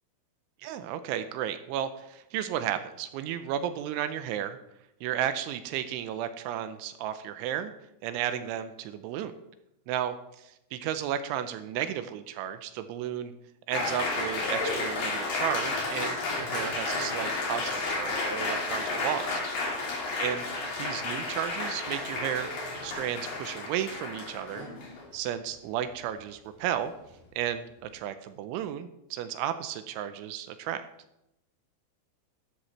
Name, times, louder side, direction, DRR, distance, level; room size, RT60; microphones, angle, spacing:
voice 1, 0.6-4.6 5.0-7.7 8.0-9.3 9.9-13.3 13.7-19.4 20.2-20.5 20.8-24.7 25.1-26.9 27.4-30.8, right 10 dB, 85° right, 10 dB, 3.0 m, -33 dB
Applause, 13.7-25.1, left 3 dB, 55° left, 4.6 m, -32 dB
13.0 x 13.0 x 3.2 m, 0.84 s
omnidirectional pair, 5.6 m